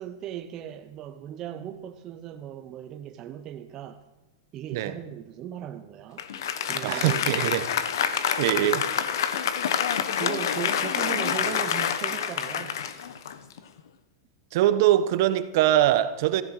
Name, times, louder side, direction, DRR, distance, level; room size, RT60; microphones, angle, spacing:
voice 1, 0.0-4.0 4.5-6.2 6.7-7.5 10.2-12.8, right 10 dB, 30° right, 0.9 m, -37 dB
Applause, 6.2-13.8, left 8 dB, 80° left, 1.4 m, -27 dB
voice 2, 6.8-7.7 8.4-8.9 14.5-16.4, right 13 dB, 55° right, 1.1 m, -22 dB
17.0 x 15.0 x 5.0 m
supercardioid pair, 155°, 2 cm